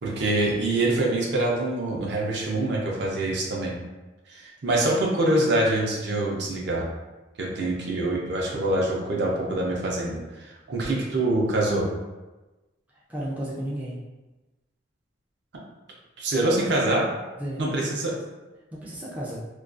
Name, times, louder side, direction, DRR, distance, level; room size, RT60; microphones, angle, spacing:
voice 1, 0.0-3.7 4.3-6.8 7.4-11.8 16.2-17.0 17.6-18.1, right 1 dB, 60° right, -2 dB, 0.5 m, -25 dB
voice 2, 13.1-13.9 17.4-17.7 18.0-18.1 18.7-19.4, right 1 dB, 10° right, -7 dB, 0.3 m, -33 dB
2.3 x 2.2 x 2.4 m, 1.1 s
head